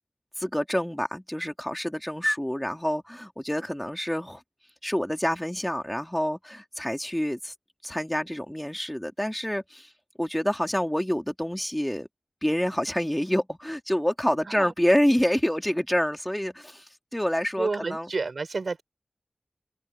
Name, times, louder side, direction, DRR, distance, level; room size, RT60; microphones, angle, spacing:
voice 1, 0.4-4.4 4.8-7.5 7.8-9.9 10.2-12.1 12.4-18.1, equal, 10° left, 2.8 m, -27 dB
voice 2, 17.6-18.8, right 4 dB, 85° right, 5.9 m, -30 dB
wide cardioid pair, 50°, 0 cm